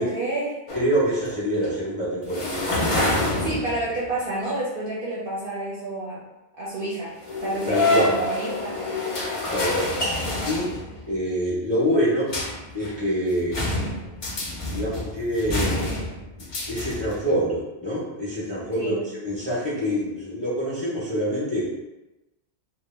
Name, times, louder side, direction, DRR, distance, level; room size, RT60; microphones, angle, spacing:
voice 1, 0.0-0.6 3.4-6.2 6.6-7.1 7.4-8.8 18.7-19.0, right 2 dB, 60° right, -7 dB, 0.7 m, -29 dB
sound 1, 0.7-1.3 1.6-1.7 2.3-4.1 7.2-11.1 12.3-12.9 13.3-17.2, left 2 dB, 55° left, 0.3 m, -27 dB
voice 2, 0.7-2.5 7.7-8.2 9.5-9.9 10.5-10.7 11.1-12.3 12.7-13.6 14.3-15.8 16.4-18.9 19.2-21.7, equal, 10° right, -8 dB, 0.7 m, -25 dB
2.1 x 2.0 x 3.2 m, 1.0 s
omnidirectional pair, 1.2 m